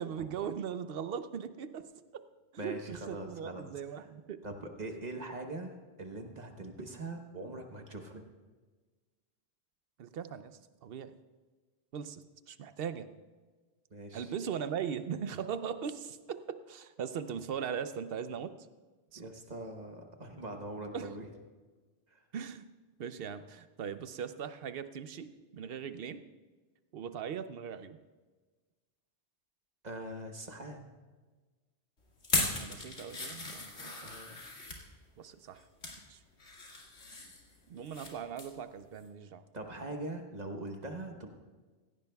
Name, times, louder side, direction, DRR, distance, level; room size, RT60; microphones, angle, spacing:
voice 1, 0.0-2.2 2.6-4.4 10.0-11.2 11.9-13.1 14.1-18.5 19.1-19.2 20.9-21.1 22.3-22.6 23.0-26.2 26.9-28.0 32.5-34.2 35.2-35.6 36.1-36.2 37.7-39.4, right 7 dB, 65° right, 12 dB, 0.8 m, -39 dB
voice 2, 2.6-4.1 4.4-8.2 13.9-14.3 19.1-21.3 22.1-22.2 29.8-30.9 34.0-34.4 39.5-41.3, right 2 dB, 40° right, 4 dB, 1.1 m, -42 dB
sound 1, 32.2-34.8 35.4-36.0 36.4-38.1 38.4-38.6 39.0-39.1, left 2 dB, 85° left, 2.3 m, -37 dB
16.0 x 16.0 x 2.3 m, 1.3 s
omnidirectional pair, 1.1 m